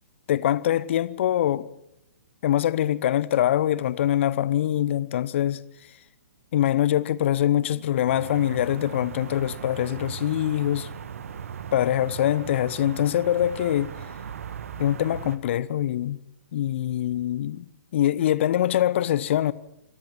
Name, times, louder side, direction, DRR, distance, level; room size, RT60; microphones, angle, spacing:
voice 1, 0.3-1.7 2.4-5.6 6.5-10.9 11.7-13.9 14.8-16.2 16.5-17.6 17.9-19.5, left 12 dB, 50° left, 0.9 m, -23 dB
sound 1, 8.1-15.4, right 7 dB, 60° right, 1.6 m, -38 dB
24.5 x 17.5 x 6.0 m
figure-of-eight pair, 120°, 9 cm